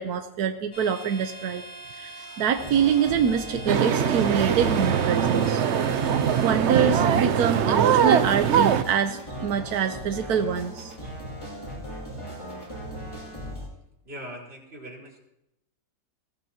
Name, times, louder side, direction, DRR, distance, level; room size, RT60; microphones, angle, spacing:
voice 1, 0.0-1.6 1.9-5.6 6.4-10.9, right 7 dB, 90° right, 6 dB, 1.3 m, -25 dB
sound 1, 0.7-6.5, right 1 dB, 70° left, 7.6 m, -43 dB
sound 2, 2.6-13.7, equal, 20° left, 7.1 m, -38 dB
sound 3, 3.7-8.8, right 8 dB, 55° right, 0.9 m, -22 dB
voice 2, 14.0-15.2, equal, 40° right, -3 dB, 4.3 m, -40 dB
21.5 x 16.5 x 2.9 m, 0.84 s
omnidirectional pair, 1.6 m